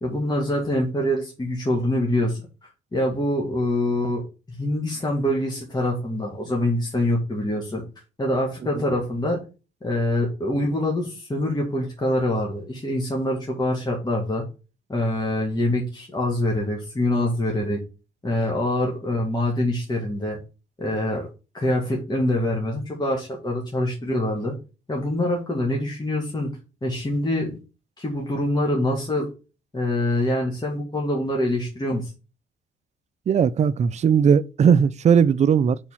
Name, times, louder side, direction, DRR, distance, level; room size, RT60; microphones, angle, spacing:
voice 1, 0.0-4.2 4.5-7.8 8.2-9.4 9.8-14.4 14.9-17.8 18.2-20.4 20.8-21.3 21.5-24.6 24.9-26.5 26.8-27.6 28.0-29.3 29.7-32.1, left 1 dB, 20° left, 1.8 m, -25 dB
voice 2, 33.3-35.8, right 7 dB, 35° right, 0.4 m, -18 dB
4.7 x 4.2 x 5.6 m
cardioid pair, 90°, 20 cm